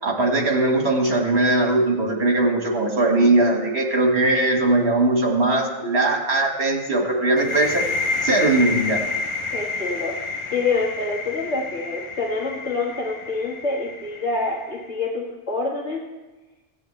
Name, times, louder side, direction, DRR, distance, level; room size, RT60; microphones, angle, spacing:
voice 1, 0.0-7.8 8.2-9.0, right 2 dB, 65° right, 0 dB, 2.0 m, -20 dB
sound 1, 7.4-14.9, left 3 dB, 40° left, 0.5 m, -29 dB
voice 2, 9.5-16.0, left 3 dB, 80° left, -3 dB, 2.0 m, -27 dB
17.0 x 8.4 x 3.2 m, 1.1 s
omnidirectional pair, 1.2 m